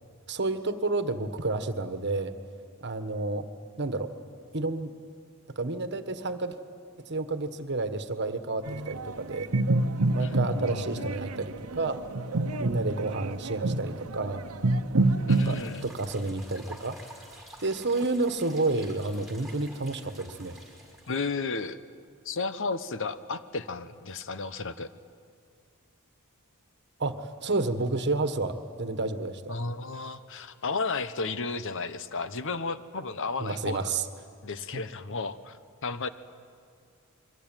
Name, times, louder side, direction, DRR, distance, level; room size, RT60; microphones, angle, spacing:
voice 1, 0.3-2.3 2.8-3.5 3.8-4.1 4.5-4.9 5.5-6.6 7.0-9.5 10.1-12.0 12.6-14.4 15.4-17.0 17.6-20.6 27.0-29.6 33.4-34.0 34.7-34.8, right 3 dB, 50° right, 9 dB, 1.4 m, -30 dB
sound 1, 8.7-15.6, right 2 dB, 85° right, 1.0 m, -28 dB
voice 2, 10.2-11.1 15.3-15.8 21.1-21.8 22.2-24.9 29.5-33.9 34.4-36.1, left 4 dB, 60° left, 12 dB, 1.0 m, -33 dB
sound 2, 15.3-21.2, right 1 dB, ahead, 5.3 m, -49 dB
28.5 x 23.0 x 9.1 m, 2.3 s
head